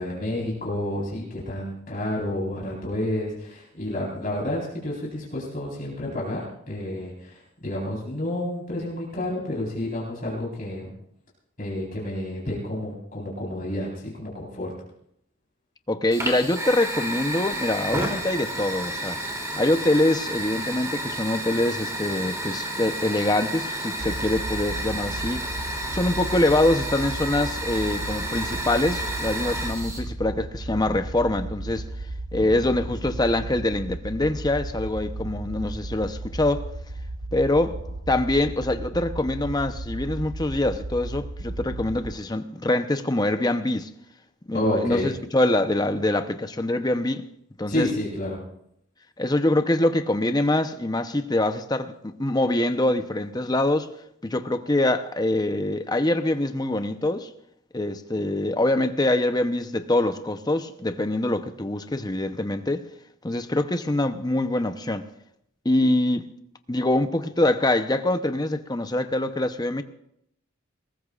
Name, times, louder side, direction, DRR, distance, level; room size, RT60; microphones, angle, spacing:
voice 1, 0.0-10.9 11.6-14.7 32.4-32.5 32.9-33.0 44.5-45.1 47.7-48.4, left 1 dB, 40° left, 4.2 m, -30 dB
voice 2, 15.9-19.2 19.6-25.5 25.9-31.9 32.3-36.7 37.3-37.8 38.1-43.9 44.5-47.2 47.6-47.9 49.2-53.9 54.2-57.3 57.7-62.9 63.2-65.1 65.6-66.3 66.7-69.8, left 1 dB, 20° left, 0.8 m, -24 dB
Fire, 16.1-30.0, right 1 dB, 15° right, 2.9 m, -31 dB
sound 1, 24.0-42.2, right 2 dB, 85° right, 1.1 m, -35 dB
21.5 x 19.0 x 2.5 m
head